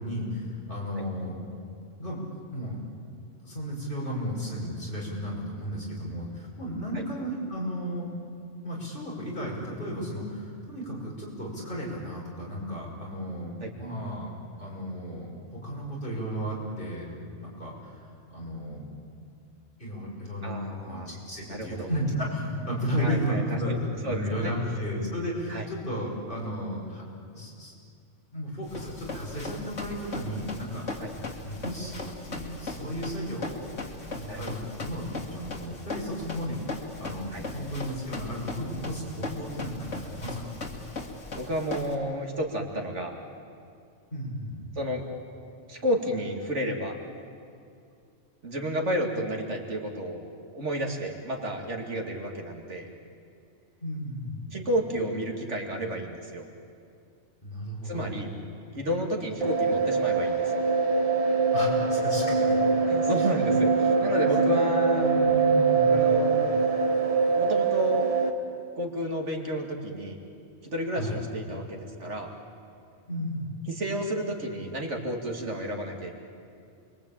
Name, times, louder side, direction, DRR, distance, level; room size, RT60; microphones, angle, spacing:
voice 1, 0.0-1.4 2.0-2.8 3.4-8.1 8.6-14.3 14.6-17.1 17.4-18.8 19.8-27.0 27.3-27.7 28.3-30.8 31.4-33.7 34.2-36.6 37.0-40.6 44.1-44.8 53.8-54.5 57.4-58.1 61.5-62.2 63.2-63.5 64.2-64.4 64.9-66.1 70.9-71.2 73.1-73.5, equal, 45° left, -4 dB, 6.2 m, -34 dB
voice 2, 20.4-21.1 21.5-21.9 23.0-23.8 24.0-24.5 25.5-25.7 31.0-31.1 34.3-34.5 37.3-37.4 41.4-43.1 44.8-45.0 45.7-47.1 48.4-50.3 50.5-52.9 54.5-56.5 57.8-58.3 58.7-60.6 62.9-65.1 65.9-66.6 67.4-68.1 68.8-70.2 70.6-72.3 73.7-76.1, equal, 70° right, 1 dB, 2.8 m, -31 dB
Run, 28.7-41.9, left 3 dB, 85° left, 2.7 m, -38 dB
sound 1, 59.4-68.3, right 4 dB, 30° right, 1.6 m, -23 dB
29.0 x 22.5 x 8.9 m, 2.5 s
omnidirectional pair, 1.3 m